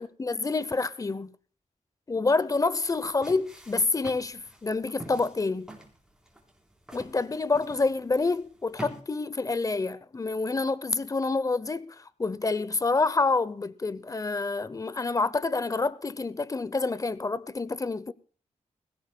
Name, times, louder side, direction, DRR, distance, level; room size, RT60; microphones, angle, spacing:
voice 1, 0.0-1.3 2.1-5.7 6.9-18.1, left 3 dB, 25° left, 0.6 m, -28 dB
sound 1, 2.9-9.0, right 1 dB, 5° right, 3.8 m, -47 dB
20.5 x 16.5 x 2.2 m
cardioid pair, 80°, 13 cm